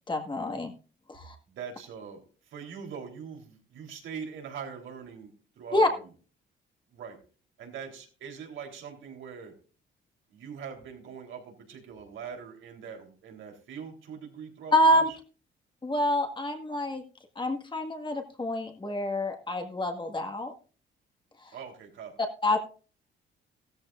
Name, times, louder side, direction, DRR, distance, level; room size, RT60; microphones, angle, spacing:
voice 1, 0.1-0.7 1.1-1.3 5.7-5.9 14.7-15.1 15.8-17.0 17.3-20.5 22.4-22.6, left 1 dB, 25° left, 4 dB, 1.8 m, -27 dB
voice 2, 1.5-6.1 6.9-7.2 7.6-9.6 10.3-15.1 21.5-22.1, right 7 dB, 80° right, 2 dB, 3.6 m, -42 dB
15.0 x 13.5 x 2.5 m, 0.37 s
cardioid pair, 90°, 20 cm